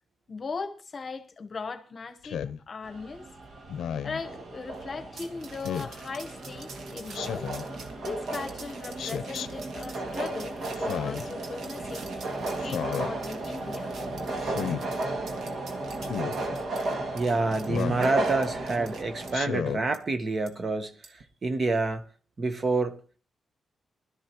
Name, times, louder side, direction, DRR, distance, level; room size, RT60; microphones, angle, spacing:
voice 1, 0.3-3.3 4.0-7.5 8.0-12.1 12.6-14.4, left 4 dB, 40° left, 1.0 m, -38 dB
Speech synthesizer, 2.2-2.6 3.7-4.2 5.6-6.0 7.1-7.7 9.0-9.5 10.8-11.3 12.6-13.1 14.4-14.8 16.0-16.4 17.7-18.1 19.3-19.8, left 8 dB, 90° left, 0.6 m, -33 dB
sound 1, 2.8-19.4, right 2 dB, 55° right, 2.1 m, -34 dB
sound 2, 5.2-19.3 19.9-20.0 20.5-20.6 21.0-21.2, right 4 dB, 75° right, 1.6 m, -47 dB
voice 2, 17.1-20.9 21.4-22.0 22.4-23.0, right 3 dB, 35° right, 1.1 m, -27 dB
20.0 x 12.5 x 3.0 m
cardioid pair, 125°, 0 cm